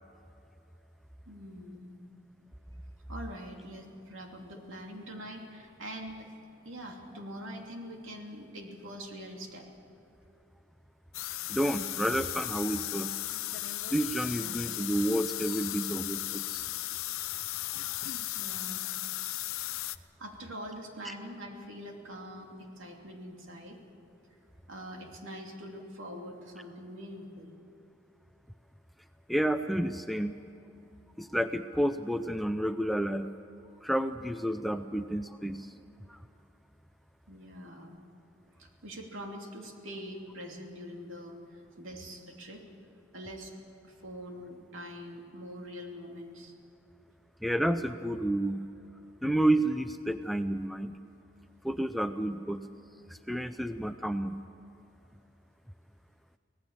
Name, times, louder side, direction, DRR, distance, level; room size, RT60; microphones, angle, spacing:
voice 1, 1.3-1.9 3.1-9.7 18.3-18.8 19.9-23.8 24.7-27.5 37.3-38.0 38.6-41.4 41.7-42.6 43.1-43.5 43.8-46.5, equal, 70° right, 1 dB, 2.9 m, -44 dB
sound 1, 11.1-20.0, left 15 dB, 85° left, 0.6 m, -36 dB
voice 2, 11.5-13.2 13.9-16.6 21.0-21.1 29.3-30.4 31.2-33.3 33.8-35.7 36.1-36.2 47.4-48.7 49.2-51.0 51.6-52.7 53.1-54.4, right 1 dB, ahead, 8 dB, 0.5 m, -30 dB
25.5 x 18.0 x 7.4 m, 2.8 s
head